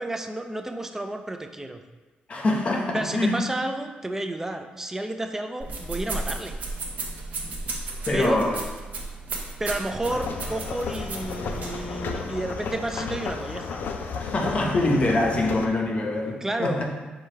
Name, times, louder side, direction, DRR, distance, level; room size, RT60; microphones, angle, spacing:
voice 1, 0.0-1.8 2.9-6.5 8.1-8.4 9.6-13.8 16.4-16.8, right 1 dB, 15° right, 6 dB, 0.3 m, -31 dB
voice 2, 2.3-3.3 8.1-8.6 14.2-16.9, left 2 dB, 40° left, 1 dB, 0.7 m, -24 dB
sound 1, 5.6-11.9, right 3 dB, 55° right, 0.8 m, -34 dB
sound 2, 10.0-15.7, left 5 dB, 70° left, 0.4 m, -33 dB
5.0 x 2.3 x 4.3 m, 1.2 s
cardioid pair, 105°, 3 cm